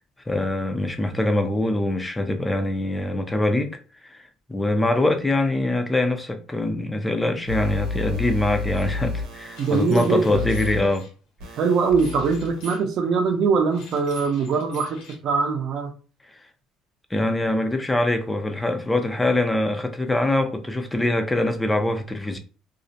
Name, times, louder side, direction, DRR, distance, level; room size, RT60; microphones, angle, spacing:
voice 1, 0.3-3.8 4.1-4.2 4.5-11.1 17.1-22.4, left 1 dB, 10° left, 0.4 m, -23 dB
sound 1, 7.5-10.8 11.4-12.7, left 4 dB, 80° right, 0.8 m, -31 dB
sound 2, 8.7-8.8 9.6-11.1 12.0-12.8 13.7-15.2, left 2 dB, 75° left, 1.0 m, -44 dB
voice 2, 9.6-10.5 11.6-15.9, right 5 dB, 55° right, 0.6 m, -22 dB
2.4 x 2.0 x 2.6 m
cardioid pair, 125°, 0 cm